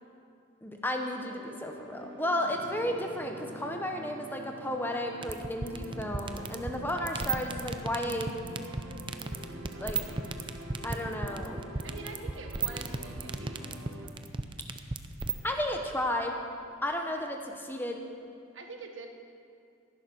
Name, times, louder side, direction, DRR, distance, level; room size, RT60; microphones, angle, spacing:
voice 1, 0.6-8.4 9.8-10.0 10.8-11.6 15.4-16.3 16.8-18.0, left 1 dB, 10° left, 3 dB, 0.9 m, -33 dB
sound 1, 1.2-14.1, right 1 dB, 85° right, 1.6 m, -45 dB
sound 2, 5.2-15.3, right 4 dB, 25° right, 0.5 m, -33 dB
voice 2, 11.8-13.7 18.5-19.1, right 3 dB, 70° right, 3 dB, 1.4 m, -45 dB
12.5 x 10.5 x 6.3 m, 2.5 s
head